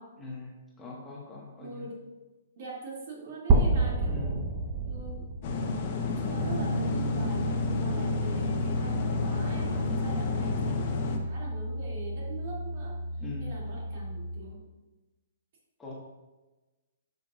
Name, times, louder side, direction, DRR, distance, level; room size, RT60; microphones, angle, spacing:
voice 1, 0.2-1.9 4.1-4.4 13.2-13.5 15.8-15.9, left 4 dB, 10° left, -4 dB, 1.5 m, -41 dB
voice 2, 1.6-2.0 2.6-4.5 4.9-5.4 6.0-14.7, right 2 dB, 50° right, -3 dB, 2.6 m, -43 dB
sound 1, 3.5-7.4, right 3 dB, 30° right, 0.9 m, -28 dB
sound 2, 5.4-11.2, left 5 dB, 40° left, 1.0 m, -31 dB
Piano, 6.4-14.4, right 1 dB, 80° right, 0.4 m, -33 dB
11.5 x 5.5 x 2.5 m, 1.1 s
figure-of-eight pair, 125°, 0 cm